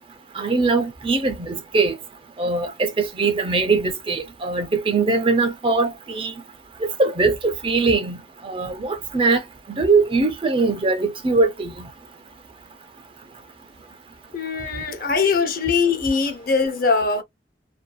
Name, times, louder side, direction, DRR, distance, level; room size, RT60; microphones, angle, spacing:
voice 1, 0.3-2.0 2.4-6.3 6.8-9.4 9.7-11.9, right 3 dB, 30° right, 0.5 m, -21 dB
voice 2, 14.3-17.2, left 5 dB, 50° left, 0.7 m, -21 dB
2.6 x 2.3 x 2.3 m
head